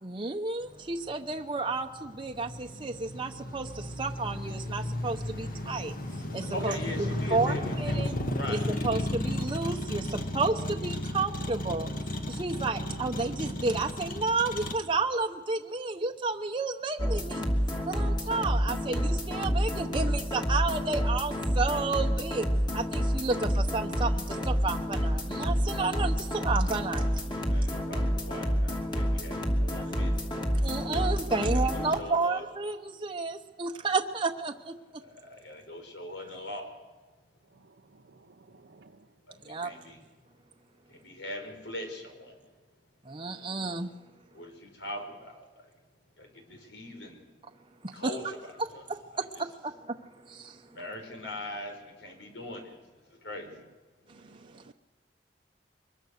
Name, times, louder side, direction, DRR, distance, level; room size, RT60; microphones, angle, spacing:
voice 1, 0.0-5.9 6.3-8.1 8.5-11.9 12.3-17.5 17.9-22.5 22.7-27.1 30.6-34.8 39.4-39.7 43.1-43.9 47.8-48.1 48.9-49.7 50.3-50.6, right 3 dB, 30° right, 3 dB, 0.9 m, -31 dB
Motor vehicle (road), 0.7-14.7, left 1 dB, 55° left, 1.9 m, -34 dB
voice 2, 6.5-8.0 8.3-8.6 27.5-30.1 31.4-32.4 35.0-36.7 39.4-40.0 41.0-42.3 44.3-45.3 46.2-47.2 47.9-48.8 50.7-51.7 52.0-52.7 53.2-53.5, left 1 dB, 85° left, 4 dB, 5.0 m, -40 dB
sound 1, 17.0-32.0, equal, 25° left, 2.8 m, -28 dB
voice 3, 37.6-39.0 53.5-53.6 54.1-54.7, right 3 dB, 75° right, 4 dB, 0.7 m, -57 dB
24.0 x 21.5 x 6.6 m, 1.3 s
head